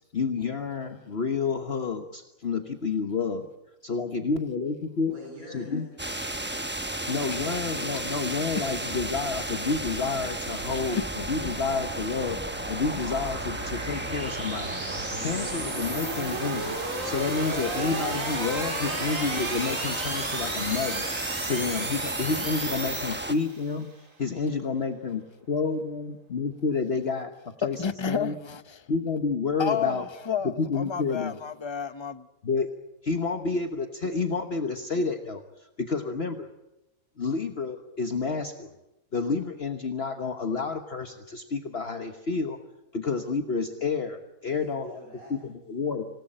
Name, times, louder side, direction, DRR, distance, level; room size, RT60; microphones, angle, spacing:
voice 1, 0.0-3.5 3.8-5.1 5.5-5.8 7.1-12.4 12.7-14.8 15.2-21.1 21.4-28.4 28.9-30.1 30.4-31.4 32.4-32.7 33.0-36.5 37.2-38.7 39.1-42.6 42.9-45.0 45.3-46.0, left 4 dB, 45° left, 1.4 m, -30 dB
voice 2, 5.1-6.3 44.4-45.4, equal, 80° right, 8.2 m, -47 dB
sound 1, 6.0-23.4, right 1 dB, 10° right, 0.8 m, -34 dB
sound 2, 9.4-23.7, right 2 dB, 65° right, 3.5 m, -35 dB
voice 3, 27.8-28.8 29.6-30.0 30.2-32.3, left 6 dB, 25° left, 0.7 m, -30 dB
26.5 x 18.5 x 8.9 m
omnidirectional pair, 1.5 m